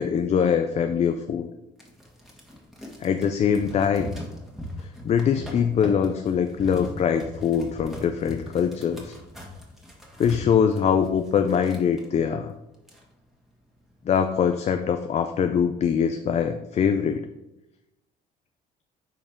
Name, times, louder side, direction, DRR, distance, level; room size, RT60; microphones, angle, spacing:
voice 1, 0.0-1.5 3.0-4.1 5.0-9.2 10.2-12.5 14.1-17.3, left 7 dB, 40° left, 7 dB, 0.5 m, -23 dB
sound 1, 1.8-12.1 12.5-12.6 12.8-13.5 13.9-14.2, equal, ahead, 1.8 m, -40 dB
9.2 x 4.8 x 3.7 m, 0.93 s
cardioid pair, 110°, 17 cm